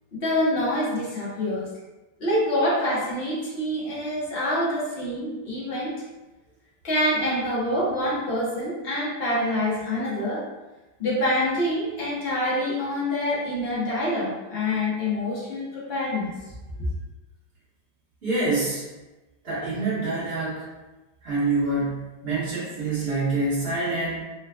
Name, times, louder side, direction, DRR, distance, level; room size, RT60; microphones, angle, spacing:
voice 1, 0.1-1.6 2.2-5.9 6.8-10.4 11.0-16.3, left 1 dB, 50° left, -7 dB, 0.7 m, -26 dB
voice 2, 18.2-18.9 19.4-20.7 21.2-24.2, right 2 dB, 35° right, -9 dB, 1.4 m, -26 dB
3.8 x 2.3 x 2.2 m, 1.1 s
omnidirectional pair, 2.0 m